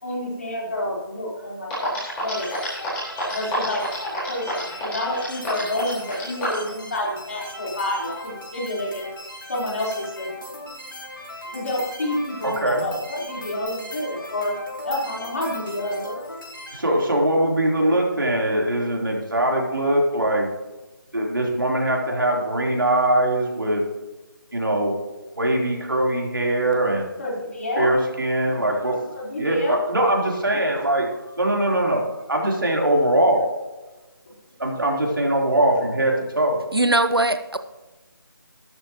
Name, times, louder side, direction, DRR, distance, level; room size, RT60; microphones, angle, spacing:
voice 1, 0.0-2.5 3.3-9.1 9.5-10.3 11.5-14.5 14.8-16.2 27.2-27.9 29.2-29.8, left 1 dB, 40° left, -3 dB, 4.0 m, -29 dB
sound 1, 1.4-1.5 1.7-6.7, left 1 dB, 10° left, 4.5 m, -29 dB
sound 2, 2.3-16.8, left 1 dB, 65° left, 4.5 m, -38 dB
voice 2, 12.4-12.8 16.7-20.5 21.1-23.8 24.5-25.0 25.4-27.1 27.8-29.1 29.4-33.5 34.6-36.6, right 1 dB, 65° right, -1 dB, 3.7 m, -22 dB
voice 3, 36.7-37.6, right 2 dB, 85° right, 10 dB, 0.9 m, -20 dB
13.0 x 13.0 x 3.0 m, 1.1 s
figure-of-eight pair, 160°, 12 cm